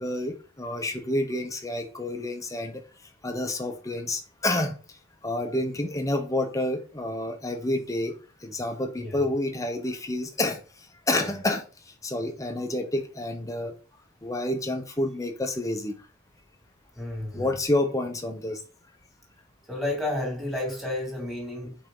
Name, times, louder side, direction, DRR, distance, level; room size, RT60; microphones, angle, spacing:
voice 1, 0.0-2.8 3.2-4.8 5.2-10.6 11.1-11.6 12.0-13.7 14.2-16.0 17.3-18.6, left 1 dB, 15° left, 0.9 m, -29 dB
voice 2, 16.9-17.5 19.7-21.8, left 1 dB, ahead, 2.3 m, -31 dB
5.6 x 4.4 x 3.8 m
head